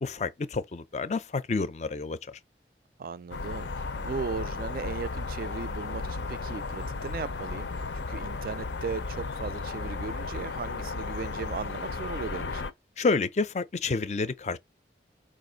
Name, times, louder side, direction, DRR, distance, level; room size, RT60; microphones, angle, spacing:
voice 1, 0.0-2.4 13.0-14.6, left 4 dB, 40° left, 0.4 m, -29 dB
voice 2, 3.0-12.7, right 5 dB, 55° right, 0.3 m, -37 dB
sound 1, 3.3-12.7, left 3 dB, 85° left, 0.6 m, -34 dB
4.9 x 2.5 x 3.8 m
head